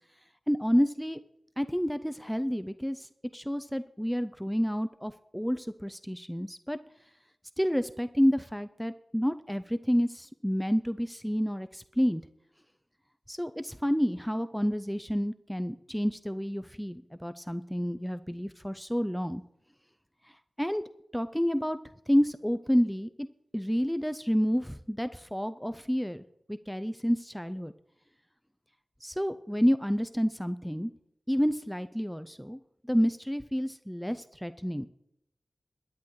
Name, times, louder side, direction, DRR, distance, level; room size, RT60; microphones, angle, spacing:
voice 1, 0.5-1.2 1.6-6.8 7.6-12.2 13.3-19.4 20.6-20.8 21.1-21.8 22.1-23.3 23.5-27.7 29.0-30.9 31.3-32.6 32.9-34.9, equal, ahead, 11 dB, 0.4 m, -29 dB
22.0 x 10.5 x 3.1 m, 0.81 s
wide cardioid pair, 95°, 0 cm